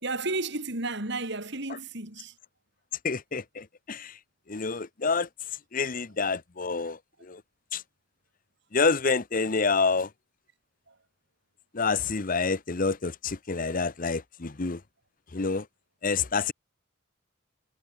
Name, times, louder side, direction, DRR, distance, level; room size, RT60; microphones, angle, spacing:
voice 1, 0.0-2.3 10.9-11.0, right 2 dB, 55° right, 4.1 m, -32 dB
voice 2, 3.0-4.2 4.5-5.3 5.7-7.4 7.7-7.8 8.7-10.1 11.7-14.8 15.3-15.7 16.0-16.5, left 4 dB, 40° left, 0.8 m, -28 dB
head